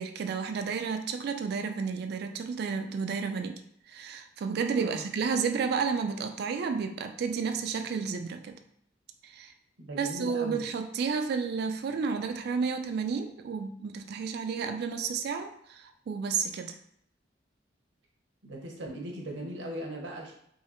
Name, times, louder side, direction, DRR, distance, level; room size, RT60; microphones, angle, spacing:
voice 1, 0.0-3.6 3.9-8.6 9.2-9.5 9.9-16.8, right 5 dB, 60° right, 6 dB, 0.3 m, -31 dB
voice 2, 9.8-10.6 18.4-20.3, right 1 dB, 85° right, 0 dB, 0.8 m, -39 dB
3.2 x 2.8 x 2.9 m, 0.70 s
head